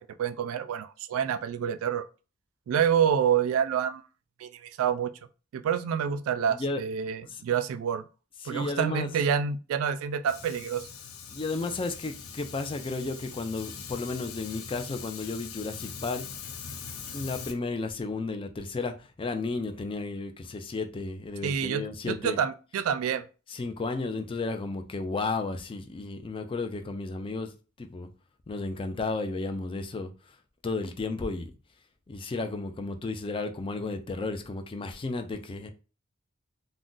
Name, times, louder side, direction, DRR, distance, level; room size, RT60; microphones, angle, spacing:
voice 1, 0.0-2.0 2.7-4.0 4.4-5.1 5.5-8.0 8.5-10.9 21.4-23.2, right 8 dB, 75° right, 0.3 m, -28 dB
voice 2, 6.5-6.8 7.2-7.4 8.4-9.1 11.3-16.2 17.1-22.4 23.5-28.1 28.5-30.4 30.6-31.5 32.1-35.7, left 3 dB, 25° left, 0.4 m, -33 dB
Fire, 10.3-17.5, left 6 dB, 80° left, 0.5 m, -42 dB
2.5 x 2.2 x 3.7 m
head